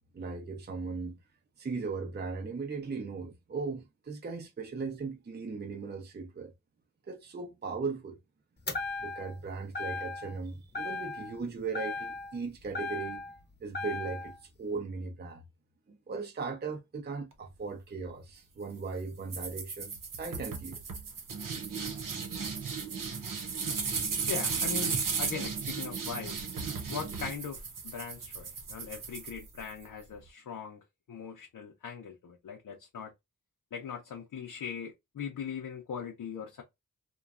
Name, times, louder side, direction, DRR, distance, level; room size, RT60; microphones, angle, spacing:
voice 1, 0.1-1.2 1.6-6.5 7.1-8.2 9.0-13.2 13.6-15.4 15.9-20.8, right 4 dB, 35° right, 0.5 m, -38 dB
sound 1, 8.7-9.4 9.8-10.4 10.7-11.4 11.7-13.4 13.7-14.4, left 3 dB, 35° left, 0.7 m, -37 dB
sound 2, 19.3-29.8, right 5 dB, 85° right, 0.8 m, -35 dB
voice 2, 24.3-26.4 26.9-30.8 31.1-33.1 33.7-36.6, left 6 dB, 90° left, 0.6 m, -40 dB
3.0 x 2.2 x 2.3 m
wide cardioid pair, 95°, 32 cm